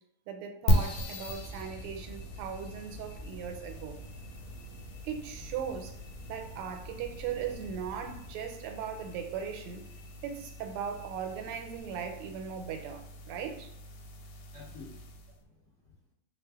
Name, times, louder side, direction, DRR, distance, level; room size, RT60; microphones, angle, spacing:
voice 1, 0.3-4.0 5.0-6.0 6.3-9.9 10.2-13.7, right 7 dB, 85° right, 1.5 m, -38 dB
sound 1, 0.7-15.4, equal, 90° left, 1.5 m, -37 dB
sound 2, 1.3-8.3, equal, 65° right, 1.0 m, -48 dB
voice 2, 14.5-16.1, left 4 dB, 55° left, 0.8 m, -53 dB
3.3 x 2.4 x 3.3 m
omnidirectional pair, 2.4 m